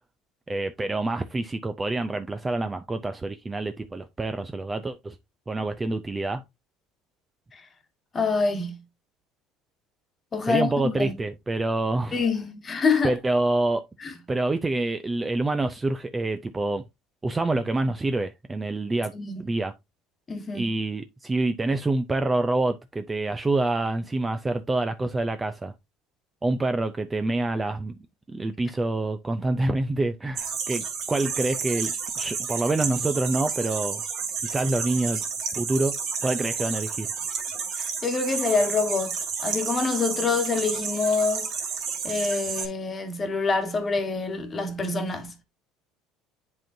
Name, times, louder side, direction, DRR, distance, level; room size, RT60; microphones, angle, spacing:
voice 1, 0.5-5.2 5.5-6.4 10.4-12.2 13.0-13.8 14.3-16.8 17.2-19.1 19.4-19.7 20.5-25.7 26.4-28.0 28.3-34.0 34.4-35.2 35.6-36.0 36.2-37.1, right 2 dB, 15° right, 0.4 m, -27 dB
voice 2, 8.1-8.8 10.3-11.1 12.1-13.1 14.0-14.1 19.1-19.5 20.3-20.7 37.8-39.1 39.4-41.5 42.0-45.4, left 4 dB, 20° left, 1.3 m, -26 dB
sound 1, 30.4-42.7, right 6 dB, 50° right, 2.3 m, -31 dB
10.5 x 3.7 x 2.6 m
cardioid pair, 150°, 0 cm